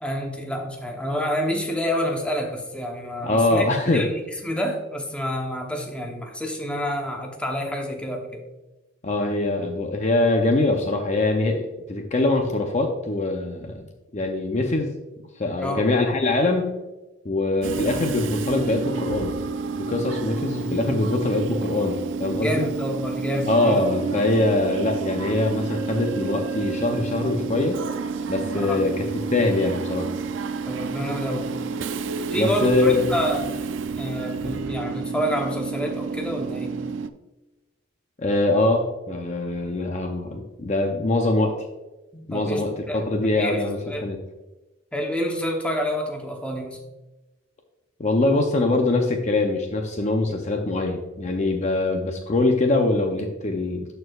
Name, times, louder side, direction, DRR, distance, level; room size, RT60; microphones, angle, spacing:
voice 1, 0.0-3.6 3.9-8.4 15.6-15.9 22.4-23.8 28.6-28.8 30.7-31.5 32.3-33.6 34.0-36.8 42.1-43.0 43.3-44.0 44.9-46.8, equal, 5° left, 2 dB, 0.8 m, -28 dB
voice 2, 3.2-4.1 9.0-13.8 14.1-14.9 15.4-16.7 17.2-19.3 19.7-22.6 23.5-27.8 28.3-29.0 29.3-30.1 32.3-33.1 38.2-41.6 42.3-44.2 48.0-53.9, left 2 dB, 35° left, 3 dB, 0.6 m, -23 dB
Train / Subway metro underground, 17.6-37.1, right 5 dB, 65° right, 0.4 m, -30 dB
13.0 x 4.5 x 2.4 m, 1.1 s
head